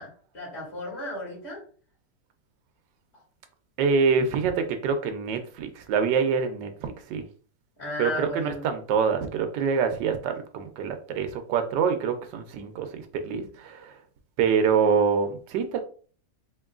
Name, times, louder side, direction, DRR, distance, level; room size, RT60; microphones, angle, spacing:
voice 1, 0.0-1.6 7.8-8.6, left 1 dB, 40° left, 2.4 m, -34 dB
voice 2, 3.8-7.3 8.0-13.9 14.4-15.8, right 6 dB, 85° right, 1.3 m, -25 dB
4.5 x 2.9 x 2.4 m
omnidirectional pair, 1.8 m